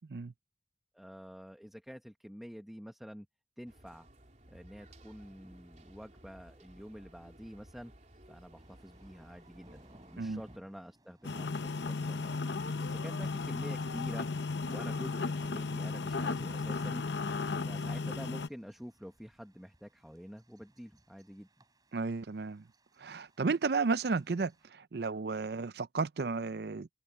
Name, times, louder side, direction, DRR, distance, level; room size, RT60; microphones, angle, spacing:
voice 1, 0.9-3.3 3.6-4.1 4.5-7.9 8.3-9.8 10.1-12.3 12.8-14.3 14.7-17.1 17.6-21.6, equal, ahead, 1.0 m, -47 dB
sound 1, 3.7-10.6, right 1 dB, 40° right, 3.4 m, -57 dB
sound 2, 8.6-24.7, right 1 dB, 20° right, 4.6 m, -65 dB
sound 3, 11.2-18.5, left 3 dB, 80° left, 0.9 m, -35 dB
voice 2, 21.9-22.6 23.0-26.9, right 4 dB, 65° right, 0.5 m, -33 dB
head